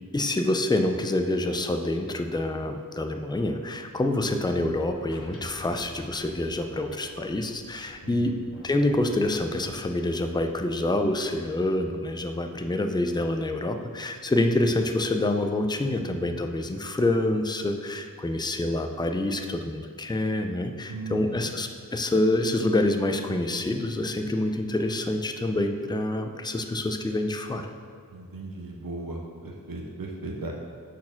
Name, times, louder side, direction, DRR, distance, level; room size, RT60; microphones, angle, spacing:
voice 1, 0.1-8.4 8.6-27.7, left 1 dB, 15° left, 5 dB, 0.5 m, -27 dB
sound 1, 3.8-11.7, left 1 dB, 40° left, 1.1 m, -50 dB
voice 2, 8.0-8.3 20.9-21.4 28.1-30.5, right 2 dB, 80° right, 0 dB, 0.7 m, -37 dB
6.5 x 4.3 x 5.8 m, 2.2 s
wide cardioid pair, 55°, 34 cm